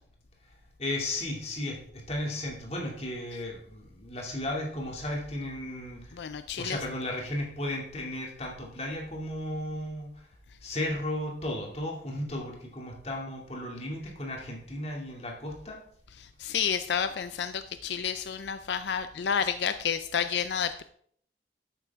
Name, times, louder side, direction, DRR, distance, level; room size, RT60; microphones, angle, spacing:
voice 1, 0.8-6.3 6.6-10.1 10.6-15.8, left 1 dB, 35° left, -1 dB, 2.5 m, -35 dB
voice 2, 6.2-6.8 16.4-20.8, left 7 dB, 80° left, 10 dB, 0.4 m, -30 dB
12.0 x 9.0 x 3.6 m, 0.62 s
head